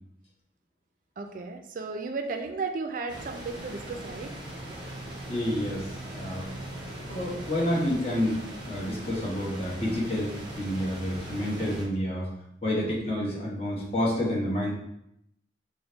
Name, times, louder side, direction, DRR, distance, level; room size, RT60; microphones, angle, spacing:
voice 1, 1.2-4.3, right 4 dB, 45° right, 5 dB, 0.4 m, -34 dB
sound 1, 3.1-11.8, right 1 dB, 25° right, 0.8 m, -40 dB
voice 2, 5.3-5.9 6.1-6.4 7.1-12.3 12.6-14.7, left 1 dB, 35° left, -5 dB, 1.0 m, -29 dB
3.5 x 2.1 x 3.8 m, 0.78 s
head